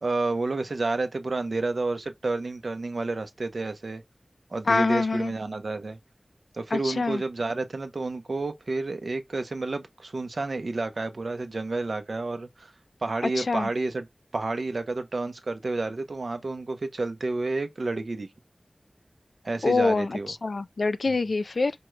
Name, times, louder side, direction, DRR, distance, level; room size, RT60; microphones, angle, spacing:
voice 1, 0.0-4.0 4.5-6.0 6.5-12.7 13.0-14.1 14.3-18.3 19.4-20.3 21.1-21.2, right 3 dB, 75° right, 0.8 m, -30 dB
voice 2, 4.7-5.3 6.7-7.2 13.2-13.7 19.6-21.7, left 3 dB, 80° left, 0.4 m, -25 dB
5.2 x 2.3 x 3.1 m
wide cardioid pair, 70°, 0 cm